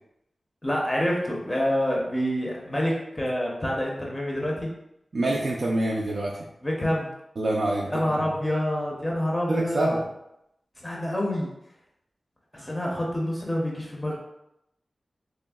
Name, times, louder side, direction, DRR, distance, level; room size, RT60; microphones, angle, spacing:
voice 1, 0.6-4.7 6.6-7.1 7.9-10.0 10.8-11.5 12.5-14.2, equal, 20° left, -2 dB, 0.5 m, -27 dB
voice 2, 5.1-6.3 7.4-7.9 8.2-8.3 9.5-10.0 12.6-12.7, right 1 dB, 60° right, -3 dB, 0.3 m, -26 dB
3.3 x 2.0 x 2.2 m, 0.83 s
wide cardioid pair, 95°, 0 cm